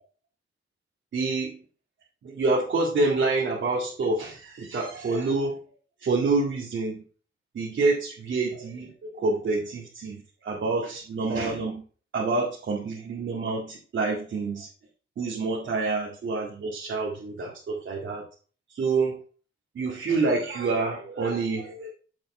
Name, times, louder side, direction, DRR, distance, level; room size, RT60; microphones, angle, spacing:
voice 1, 1.1-1.6 2.2-5.6 6.0-7.0 7.5-11.8 12.1-14.7 15.2-18.2 18.7-19.2 19.7-21.9, right 3 dB, 65° right, -4 dB, 2.2 m, -27 dB
7.7 x 6.6 x 4.2 m, 0.39 s
wide cardioid pair, 125°, 21 cm